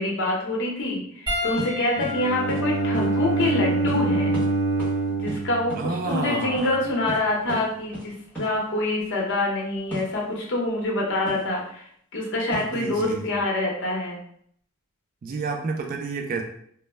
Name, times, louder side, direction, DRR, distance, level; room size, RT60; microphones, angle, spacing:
voice 1, 0.0-4.3 5.1-11.9 12.1-14.2, left 2 dB, 60° left, -2 dB, 0.7 m, -26 dB
Piano, 1.3-5.9 6.9-7.1 9.0-9.1, left 3 dB, 25° right, 1.1 m, -35 dB
sound 1, 1.6-1.7 2.0-2.2 2.5-2.6 2.9-3.1 3.4-3.5 3.9-4.0 4.3-4.5 4.8-5.0 5.3-6.2 6.6-6.7 7.1-7.2 7.5-7.6 7.9-8.1 8.3-8.5 9.9-10.1 11.3-11.5 12.5-12.8, right 1 dB, 10° left, 0.9 m, -34 dB
voice 2, 2.0-2.3 5.8-6.8 12.7-13.4 15.2-16.4, right 3 dB, 40° right, 2 dB, 0.3 m, -30 dB
Bowed string instrument, 2.1-6.2, right 3 dB, 85° right, 0.7 m, -25 dB
2.1 x 2.0 x 3.1 m, 0.66 s
head